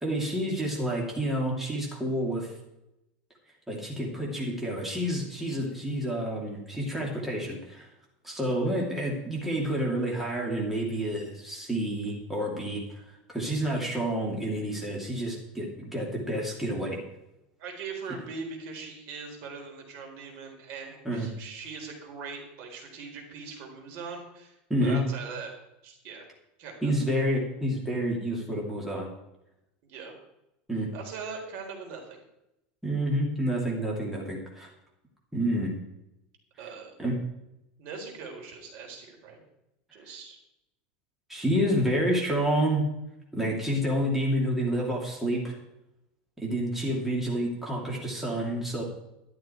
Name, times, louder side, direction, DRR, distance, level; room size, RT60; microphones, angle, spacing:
voice 1, 0.0-2.6 3.7-7.9 8.2-13.0 13.3-17.0 21.0-21.3 24.7-25.0 26.8-29.1 30.7-30.9 32.8-34.7 35.3-35.7 37.0-37.1 41.3-42.8 43.3-45.5 46.4-48.8, equal, 5° right, -3 dB, 2.8 m, -29 dB
voice 2, 17.6-25.5 25.8-26.2 26.6-27.2 29.8-30.2 30.9-32.2 36.6-37.0 37.8-39.4 39.9-40.4, right 5 dB, 55° right, 2 dB, 4.1 m, -41 dB
12.5 x 12.0 x 4.6 m, 0.87 s
supercardioid pair, 155°, 5 cm